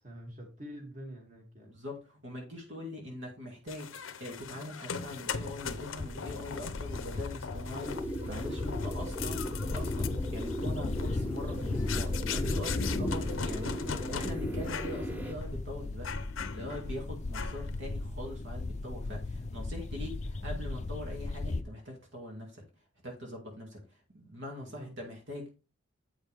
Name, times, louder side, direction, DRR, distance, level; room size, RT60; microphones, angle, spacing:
voice 1, 0.0-1.7 24.6-24.9, equal, 40° right, 1 dB, 2.4 m, -46 dB
voice 2, 1.7-16.1 16.5-22.6 23.0-25.5, left 1 dB, 65° right, 0 dB, 2.2 m, -42 dB
sound 1, 3.7-14.3 14.6-15.0 15.4-15.5 16.0-16.9 17.3-17.7, left 6 dB, 80° left, 0.8 m, -40 dB
sound 2, 5.5-21.6, left 2 dB, 35° left, 0.5 m, -36 dB
sound 3, 7.8-15.3, equal, 10° right, 0.9 m, -38 dB
8.3 x 6.3 x 3.4 m, 0.31 s
head